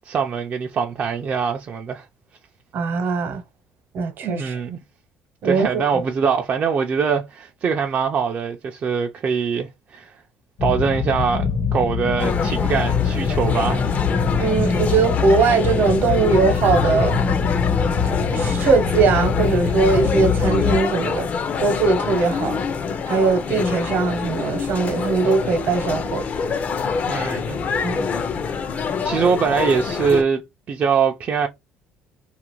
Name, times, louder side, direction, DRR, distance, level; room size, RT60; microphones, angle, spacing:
voice 1, 0.1-2.1 4.2-4.8 5.4-10.1 10.6-13.9 27.1-27.7 29.0-31.5, right 6 dB, 40° right, 0.4 m, -23 dB
voice 2, 2.7-3.4 3.9-4.6 5.4-6.0 14.4-17.2 18.0-21.3 21.6-22.6 23.1-26.2 27.7-28.1, right 4 dB, 60° right, 0.9 m, -20 dB
sound 1, 10.6-20.8, left 6 dB, 70° left, 1.1 m, -23 dB
sound 2, 12.2-30.2, left 5 dB, 40° left, 0.5 m, -26 dB
2.8 x 2.4 x 3.0 m
cardioid pair, 125°, 4 cm